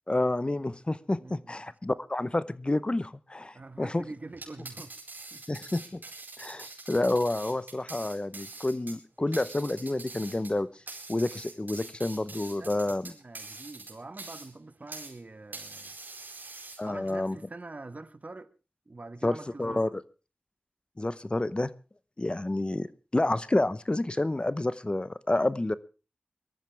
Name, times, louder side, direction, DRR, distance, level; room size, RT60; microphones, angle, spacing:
voice 1, 0.1-4.0 5.5-6.0 6.4-10.7 11.1-13.1 16.8-17.4 19.2-20.0 21.0-21.7 22.2-25.7, left 2 dB, 30° left, 0.8 m, -29 dB
voice 2, 1.2-1.6 3.5-4.9 5.3-5.6 12.6-15.9 16.8-18.5 18.9-19.9, right 2 dB, 50° right, 1.2 m, -45 dB
sound 1, 4.3-15.2 15.5-17.1, right 3 dB, 65° right, 4.6 m, -44 dB
23.0 x 13.5 x 3.4 m
wide cardioid pair, 70°, 3 cm